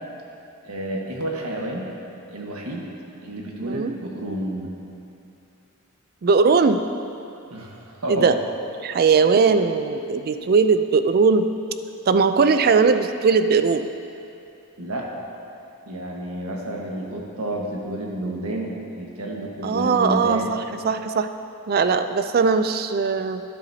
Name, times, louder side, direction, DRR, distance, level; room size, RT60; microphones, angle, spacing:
voice 1, 0.6-1.8 2.3-2.8 3.2-4.7 7.5-8.3 14.8-15.1 15.8-20.6, right 1 dB, 80° right, -1 dB, 1.4 m, -30 dB
voice 2, 3.5-3.9 6.2-6.8 8.1-8.4 8.8-11.5 12.1-13.9 19.6-21.3 21.7-23.4, right 5 dB, 45° right, 9 dB, 0.4 m, -19 dB
12.0 x 10.0 x 2.8 m, 2.8 s
head